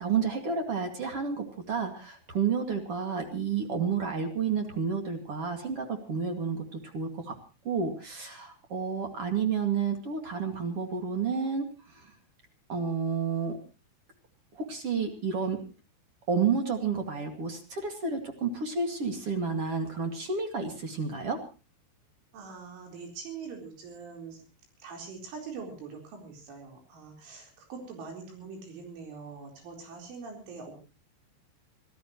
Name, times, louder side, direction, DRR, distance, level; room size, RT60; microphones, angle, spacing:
voice 1, 0.0-7.4 7.6-12.1 12.7-13.6 14.5-15.6 16.3-21.4, right 5 dB, 45° right, 5 dB, 2.2 m, -30 dB
voice 2, 22.3-24.4 24.8-30.7, right 5 dB, 75° right, 2 dB, 6.6 m, -43 dB
25.5 x 15.5 x 3.1 m, 0.33 s
omnidirectional pair, 5.6 m